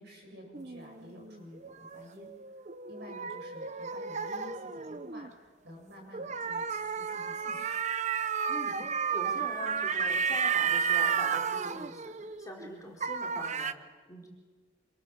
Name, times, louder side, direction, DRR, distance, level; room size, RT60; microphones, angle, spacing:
voice 1, 0.0-2.3 2.6-7.8, left 1 dB, 60° right, 1 dB, 7.7 m, -51 dB
sound 1, 0.5-5.3 6.1-12.7 13.0-13.7, right 6 dB, 35° right, 0.9 m, -32 dB
voice 2, 9.1-14.3, left 1 dB, 15° left, -2 dB, 4.7 m, -43 dB
27.0 x 27.0 x 7.5 m, 1.4 s
head